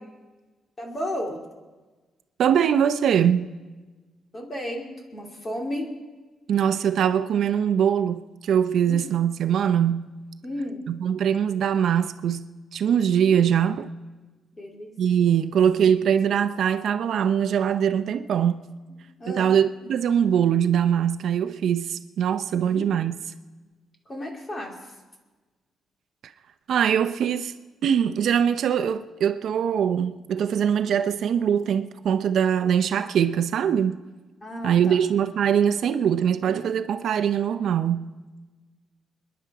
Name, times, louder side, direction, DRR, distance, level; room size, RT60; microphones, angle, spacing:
voice 1, 0.8-1.4 4.3-5.9 8.9-9.1 10.4-10.8 13.3-13.4 14.6-14.9 19.2-19.5 22.6-23.1 24.1-24.8 34.4-35.0, left 1 dB, 25° left, 2.7 m, -33 dB
voice 2, 2.4-3.5 6.5-10.1 10.9-13.9 15.0-18.7 19.3-23.2 26.7-27.5 27.8-34.0 34.6-38.1, right 8 dB, 60° right, 0.6 m, -22 dB
28.0 x 10.5 x 4.8 m
cardioid pair, 165°, 0 cm